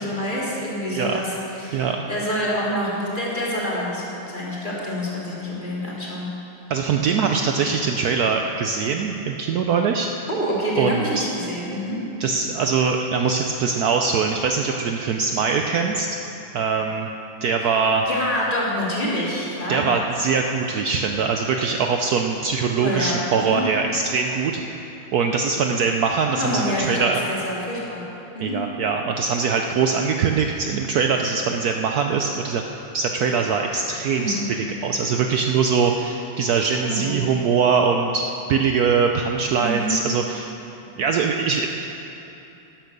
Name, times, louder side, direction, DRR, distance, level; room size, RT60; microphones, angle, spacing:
voice 1, 0.0-6.3 10.3-12.0 18.1-19.9 22.8-23.6 26.4-28.0 28.3-28.6 34.2-34.5 36.8-37.5 39.6-40.0, equal, 20° left, -6 dB, 2.8 m, -27 dB
voice 2, 1.7-2.0 6.7-10.1 10.8-11.3 12.2-16.1 16.5-17.1 17.4-18.1 19.7-24.8 25.1-27.2 28.4-32.6 32.9-38.2 38.5-40.5 40.9-41.7, right 5 dB, 85° right, 3 dB, 0.8 m, -22 dB
12.5 x 10.5 x 6.8 m, 3.0 s
omnidirectional pair, 2.4 m